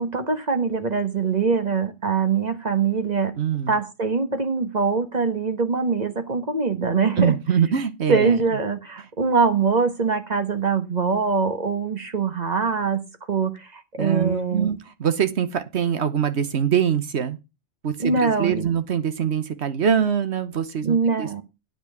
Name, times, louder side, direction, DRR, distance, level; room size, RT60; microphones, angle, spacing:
voice 1, 0.0-3.3 3.7-7.3 8.1-14.7 18.0-18.7 20.8-21.4, right 5 dB, 35° right, 1.3 m, -23 dB
voice 2, 3.4-3.7 7.2-8.4 14.0-17.4 17.8-21.3, right 8 dB, 60° right, 1.3 m, -23 dB
9.6 x 5.2 x 7.9 m
omnidirectional pair, 1.3 m